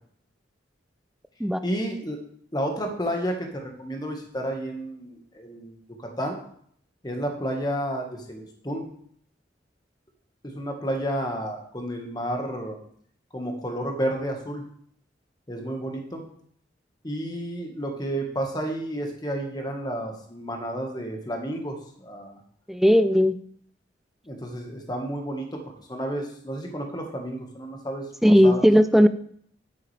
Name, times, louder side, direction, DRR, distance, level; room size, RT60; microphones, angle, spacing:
voice 1, 1.6-2.2 2.5-6.4 7.0-8.9 10.4-12.8 13.3-14.6 15.5-16.2 17.0-22.4 24.2-25.6 25.9-28.6, equal, 20° left, 2 dB, 1.5 m, -31 dB
voice 2, 22.7-23.4 28.2-29.1, equal, ahead, 11 dB, 0.4 m, -17 dB
9.2 x 8.6 x 3.3 m, 0.62 s
head